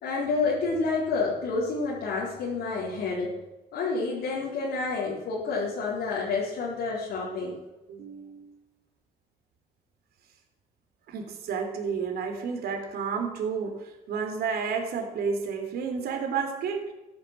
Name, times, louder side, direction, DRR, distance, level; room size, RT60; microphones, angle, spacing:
voice 1, 0.0-3.3 3.7-7.5, left 4 dB, 70° left, -5 dB, 4.2 m, -29 dB
voice 2, 7.9-8.6 11.1-16.9, right 6 dB, 70° right, 3 dB, 3.6 m, -31 dB
14.5 x 10.0 x 7.6 m, 1.0 s
cardioid pair, 110°, 17 cm